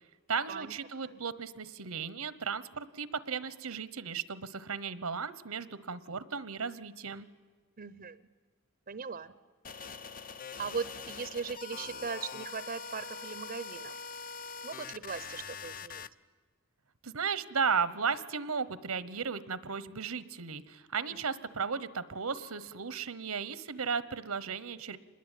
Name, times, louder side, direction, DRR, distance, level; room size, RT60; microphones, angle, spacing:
voice 1, 0.3-7.3 17.0-25.0, right 5 dB, 85° right, 16 dB, 1.1 m, -35 dB
voice 2, 7.8-8.2 8.9-9.3 10.6-13.9 14.6-16.1, right 5 dB, 40° right, 15 dB, 0.7 m, -39 dB
sound 1, 9.6-16.1, left 5 dB, 40° left, 0.7 m, -43 dB
26.5 x 21.0 x 9.2 m, 1.5 s
head